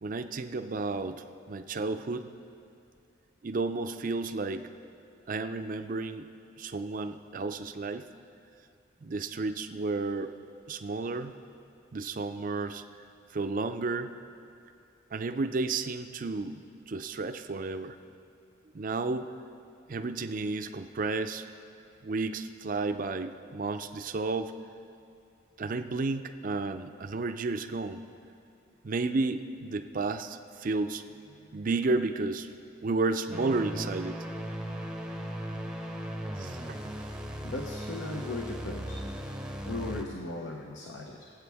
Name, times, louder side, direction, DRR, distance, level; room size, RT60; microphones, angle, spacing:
voice 1, 0.0-2.3 3.4-4.7 5.3-6.3 6.6-8.0 9.0-10.3 10.7-11.3 11.9-12.8 13.3-14.1 15.1-16.6 16.9-18.0 18.7-19.3 19.9-21.4 22.0-24.5 25.6-28.0 28.8-34.2 36.4-36.8 37.1-37.2, right 3 dB, 45° right, 9 dB, 0.5 m, -32 dB
sound 1, 33.3-40.0, equal, 5° right, 0.7 m, -37 dB
voice 2, 37.4-39.0 39.7-41.3, left 2 dB, 70° left, 1 dB, 0.9 m, -37 dB
22.5 x 7.9 x 3.5 m, 2.6 s
head